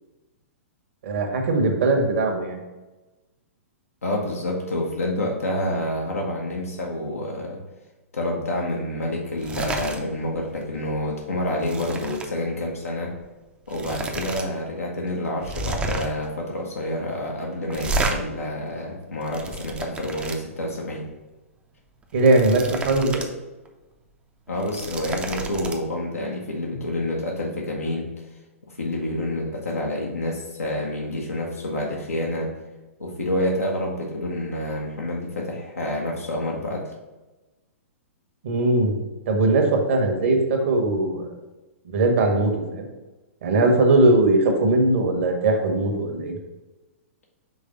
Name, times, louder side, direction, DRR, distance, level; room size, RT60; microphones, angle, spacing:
voice 1, 1.0-2.6 22.1-23.2 38.4-38.9 39.3-41.3 41.8-42.9 43.4-46.3, right 2 dB, 60° right, 3 dB, 1.3 m, -20 dB
voice 2, 4.0-7.6 8.1-13.1 13.7-21.1 24.5-28.2 28.6-32.5 33.0-36.9, left 1 dB, 80° left, -2 dB, 1.0 m, -28 dB
sound 1, 9.3-10.0 10.3-10.6 11.0-12.3 13.2-13.3 13.7-14.4 14.8-14.9 15.4-16.2 17.7-18.2 19.0-20.4 22.0-23.3 23.7-23.8 24.5-25.8, right 3 dB, 15° right, 0.6 m, -31 dB
5.4 x 3.4 x 5.1 m, 1.1 s
figure-of-eight pair, 115°, 8 cm